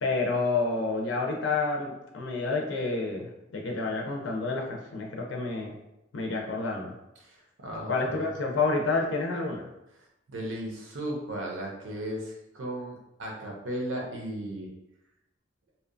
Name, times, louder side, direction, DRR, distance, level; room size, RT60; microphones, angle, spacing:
voice 1, 0.0-5.7 6.1-6.9 7.9-9.7, left 3 dB, 70° left, 0 dB, 0.5 m, -29 dB
voice 2, 7.2-8.3 10.3-14.7, right 1 dB, 75° right, -1 dB, 0.7 m, -36 dB
2.8 x 2.2 x 2.5 m, 0.90 s
head